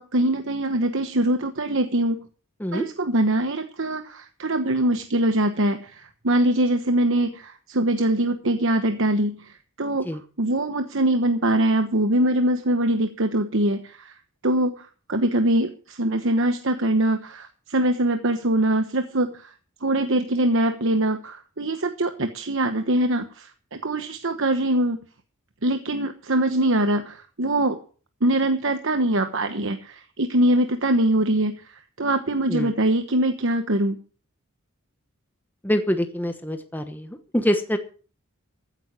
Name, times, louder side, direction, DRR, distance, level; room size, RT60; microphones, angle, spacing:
voice 1, 0.0-2.2 2.7-10.1 10.4-14.1 14.4-14.7 15.1-19.3 19.8-25.0 25.6-27.8 28.2-34.0, right 1 dB, 65° right, 7 dB, 1.1 m, -23 dB
voice 2, 35.6-37.8, equal, 10° left, 7 dB, 1.1 m, -25 dB
15.0 x 9.3 x 6.1 m, 0.40 s
head